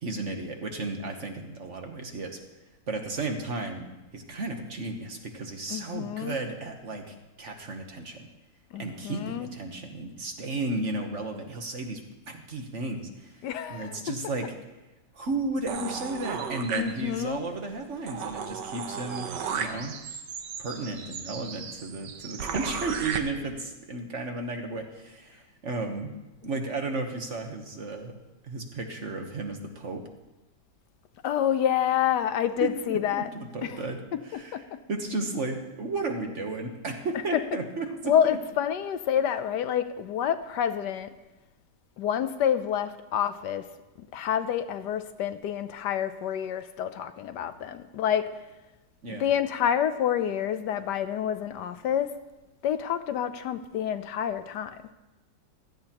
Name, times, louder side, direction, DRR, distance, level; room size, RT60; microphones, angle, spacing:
voice 1, 0.0-2.4 2.9-8.2 8.8-13.4 13.7-14.5 15.1-19.9 20.6-26.1 26.4-28.1 28.4-30.0 32.6-38.4 49.0-49.2, right 2 dB, 45° right, 4 dB, 1.3 m, -34 dB
voice 2, 5.7-6.4 8.7-9.5 13.4-14.1 16.7-17.4 31.2-33.3 33.6-33.8 34.1-34.8 37.3-37.4 38.0-41.1 42.0-43.7 44.0-48.3 49.1-52.1 52.6-54.8, left 9 dB, 75° left, 11 dB, 1.2 m, -28 dB
sound 1, 15.7-17.3 17.7-17.8 18.1-23.2, right 7 dB, 75° right, 1.5 m, -35 dB
16.5 x 13.5 x 2.9 m, 1.1 s
omnidirectional pair, 1.9 m